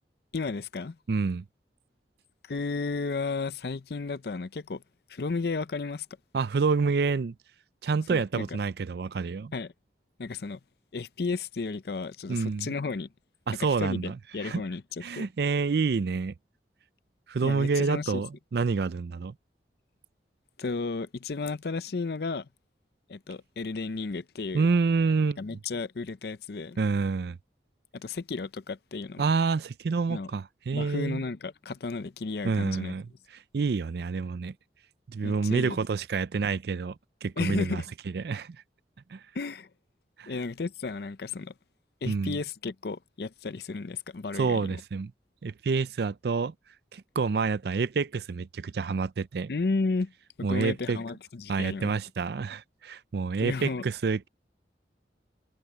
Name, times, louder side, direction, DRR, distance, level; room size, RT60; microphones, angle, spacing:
voice 1, 0.3-1.0 2.4-4.8 5.1-6.1 8.1-8.5 9.5-9.7 10.2-10.6 10.9-13.1 13.6-15.3 17.4-18.1 20.6-22.5 23.1-24.7 25.4-26.8 27.9-29.2 30.1-30.3 30.7-32.9 35.2-35.8 37.4-37.9 39.3-39.7 40.3-41.5 42.0-44.6 49.5-50.1 50.4-51.9 53.4-53.8, left 4 dB, 60° left, 0.5 m, -33 dB
voice 2, 1.1-1.4 6.3-7.3 7.8-9.5 12.3-12.7 13.5-14.6 15.0-16.3 17.3-19.3 24.5-25.4 26.8-27.4 29.2-31.2 32.4-34.5 35.1-37.0 37.2-37.8 38.1-38.6 39.1-39.2 40.2-40.4 42.1-42.4 44.3-45.1 45.4-46.5 46.9-49.5 50.4-51.0 51.5-54.3, right 4 dB, 65° right, 0.4 m, -28 dB
head